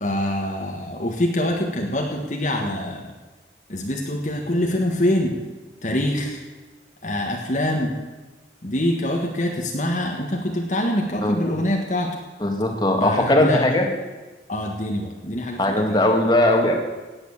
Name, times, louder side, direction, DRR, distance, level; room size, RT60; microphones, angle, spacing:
voice 1, 0.0-3.0 3.7-5.4 5.8-6.4 7.0-8.0 8.6-12.1 13.0-13.8 14.5-16.0, left 1 dB, 45° left, 1 dB, 1.5 m, -25 dB
voice 2, 12.4-13.8 15.6-16.7, left 1 dB, 25° left, 2 dB, 2.0 m, -19 dB
17.5 x 9.0 x 7.2 m, 1.2 s
head